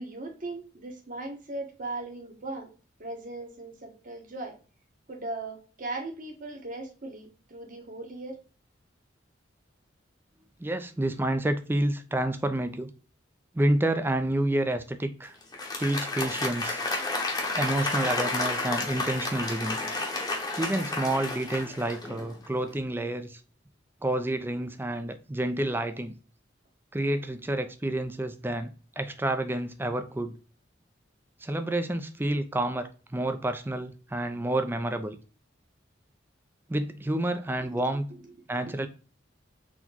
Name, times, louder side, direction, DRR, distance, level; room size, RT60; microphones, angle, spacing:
voice 1, 0.0-2.7 3.0-4.6 5.1-8.4 20.2-20.3 37.6-37.8 38.2-38.3 38.7-38.8, right 2 dB, 45° right, 1.1 m, -38 dB
voice 2, 10.6-12.9 13.5-15.4 15.8-16.8 17.5-19.8 20.6-23.4 24.0-26.1 26.9-28.7 29.0-30.4 31.4-35.2 36.7-38.1 38.5-38.9, right 1 dB, 10° right, 0.4 m, -29 dB
Applause, 15.4-22.4, left 2 dB, 20° left, 0.9 m, -31 dB
4.2 x 3.0 x 2.7 m
head